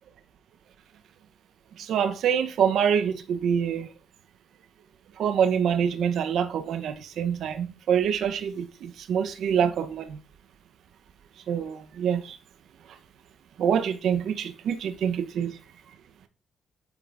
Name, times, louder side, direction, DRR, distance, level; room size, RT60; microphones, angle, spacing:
voice 1, 1.8-3.9 5.2-10.2 11.5-12.4 13.6-15.5, right 8 dB, 70° right, 0.7 m, -26 dB
8.1 x 3.8 x 3.4 m
cardioid pair, 90°, 0 cm